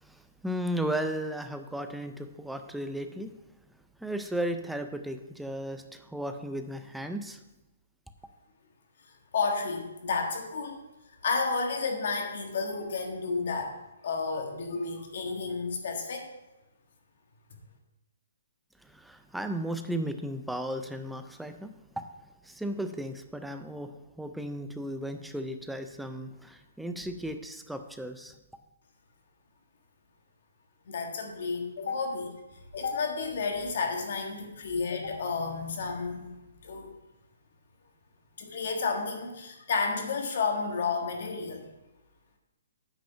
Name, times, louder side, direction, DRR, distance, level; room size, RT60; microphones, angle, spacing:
voice 1, 0.0-3.3 4.0-7.4 18.8-22.1 22.4-28.3, right 1 dB, ahead, 7 dB, 0.3 m, -35 dB
voice 2, 9.3-10.8 11.2-13.8 14.0-16.3 30.9-32.3 32.7-36.3 36.6-36.9 38.4-41.6, left 4 dB, 45° left, 3 dB, 1.5 m, -31 dB
9.0 x 5.2 x 5.6 m, 1.0 s
hypercardioid pair, 180°, 0 cm